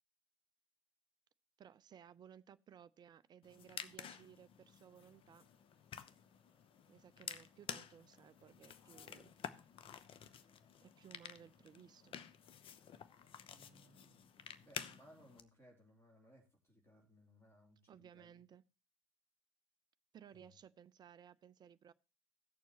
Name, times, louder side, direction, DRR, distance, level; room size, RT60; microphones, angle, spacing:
voice 1, 1.6-5.4 6.9-9.3 10.8-12.2 17.9-18.6 20.1-21.9, right 9 dB, 25° right, 0.5 m, -59 dB
sound 1, 3.4-15.4, left 8 dB, 35° left, 0.7 m, -51 dB
sound 2, 4.8-14.0, left 3 dB, 60° left, 4.2 m, -79 dB
voice 2, 13.5-18.4 20.3-20.5, equal, 15° left, 3.1 m, -65 dB
16.5 x 6.9 x 2.9 m
figure-of-eight pair, 70°, 15 cm